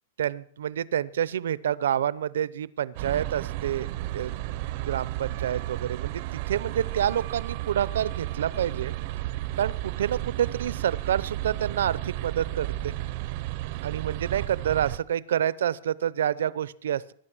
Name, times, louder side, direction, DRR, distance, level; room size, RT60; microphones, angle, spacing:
voice 1, 0.2-3.9 4.1-4.3 4.8-8.9 9.6-12.9 13.8-17.1, right 10 dB, 80° right, 19 dB, 0.6 m, -28 dB
sound 1, 2.9-15.0, right 16 dB, 35° right, 0.6 m, -33 dB
20.0 x 11.5 x 6.1 m, 0.65 s
supercardioid pair, 175°, 0 cm